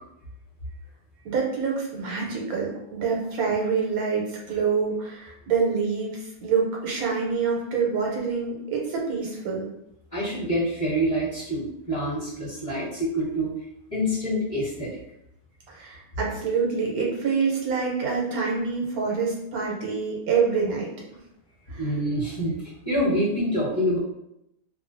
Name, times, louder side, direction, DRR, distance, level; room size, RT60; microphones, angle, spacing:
voice 1, 1.2-9.7 15.7-20.9 21.7-21.8, right 5 dB, 80° right, -2 dB, 1.1 m, -26 dB
voice 2, 10.1-13.5 13.9-14.9 21.8-24.0, equal, 25° left, -10 dB, 1.0 m, -26 dB
2.4 x 2.3 x 2.5 m, 0.82 s
omnidirectional pair, 1.5 m